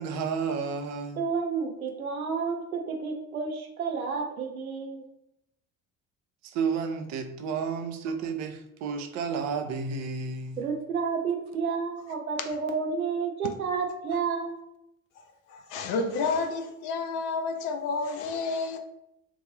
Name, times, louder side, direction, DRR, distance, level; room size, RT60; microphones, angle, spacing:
voice 1, 0.0-1.2 6.4-10.7, right 5 dB, 40° right, 0.6 m, -31 dB
voice 2, 1.2-5.1 10.6-14.6, right 5 dB, 80° right, 0.6 m, -30 dB
voice 3, 15.5-18.8, left 4 dB, 50° left, 0.6 m, -30 dB
3.5 x 2.6 x 3.1 m
figure-of-eight pair, 60°, 42 cm